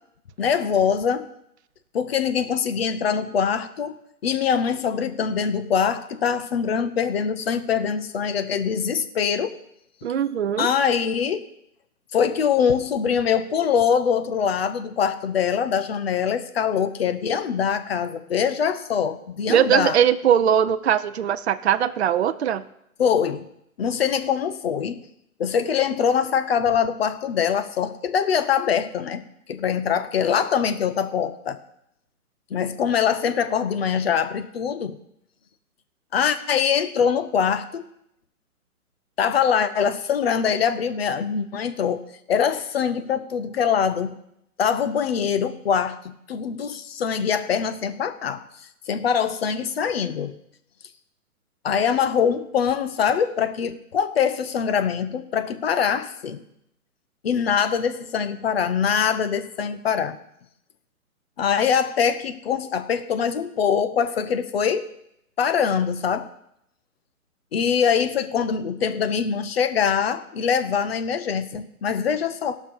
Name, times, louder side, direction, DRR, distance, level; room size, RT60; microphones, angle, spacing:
voice 1, 0.4-1.3 1.9-9.5 10.6-11.4 12.1-20.0 23.0-23.5 23.8-25.0 25.4-31.6 32.5-35.0 36.1-37.8 39.2-42.0 42.3-44.2 44.6-48.4 48.9-50.3 51.6-56.4 57.2-60.2 61.4-64.9 65.4-66.3 67.5-72.6, left 7 dB, 40° left, 10 dB, 0.9 m, -23 dB
voice 2, 10.0-10.7 19.5-22.6, right 9 dB, 50° right, 11 dB, 0.5 m, -20 dB
17.0 x 5.9 x 5.6 m, 0.77 s
figure-of-eight pair, 140°, 44 cm